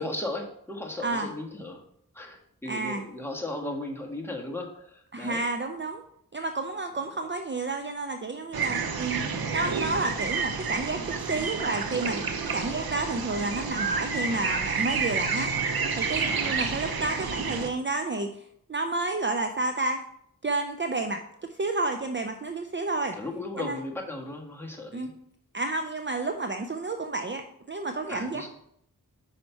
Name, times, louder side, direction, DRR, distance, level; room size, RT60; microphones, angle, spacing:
voice 1, 0.0-1.8 2.1-5.4 8.6-8.9 16.1-16.7 23.1-25.1 28.1-28.5, left 2 dB, 5° left, 0 dB, 1.5 m, -36 dB
voice 2, 2.7-3.0 5.1-6.0 6.3-9.2 9.5-12.2 12.5-15.5 15.9-18.4 18.7-20.0 20.4-21.2 21.5-23.1 23.6-23.8 24.9-25.1 25.5-27.4 27.7-28.5, right 3 dB, 35° right, 6 dB, 0.5 m, -30 dB
sound 1, 8.5-17.7, right 5 dB, 85° right, 0.7 m, -29 dB
5.7 x 5.3 x 4.5 m, 0.71 s
wide cardioid pair, 40°, 35 cm